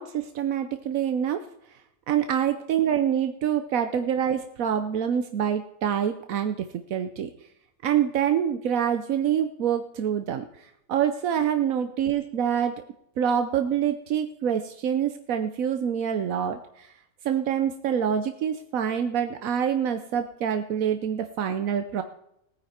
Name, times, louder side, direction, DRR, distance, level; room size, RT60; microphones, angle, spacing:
voice 1, 0.0-1.4 2.1-7.3 7.8-12.7 13.2-16.9 17.2-22.0, right 8 dB, 85° right, 8 dB, 1.2 m, -26 dB
18.5 x 9.7 x 4.3 m, 0.78 s
omnidirectional pair, 1.4 m